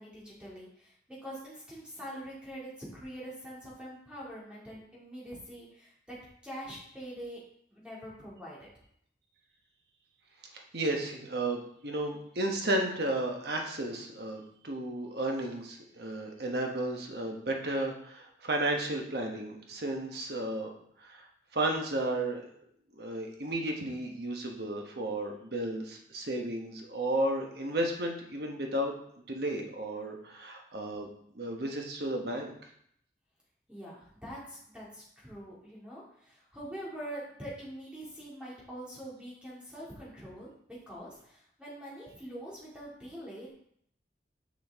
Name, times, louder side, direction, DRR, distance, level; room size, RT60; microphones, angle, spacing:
voice 1, 0.0-6.2 6.4-7.4 7.7-8.7 33.7-43.5, equal, 5° right, -7 dB, 2.3 m, -44 dB
voice 2, 10.5-20.7 21.0-21.3 21.5-22.5 23.0-29.0 29.3-31.1 31.3-32.5, right 1 dB, 65° right, 1 dB, 1.1 m, -33 dB
6.2 x 6.2 x 3.5 m, 0.69 s
head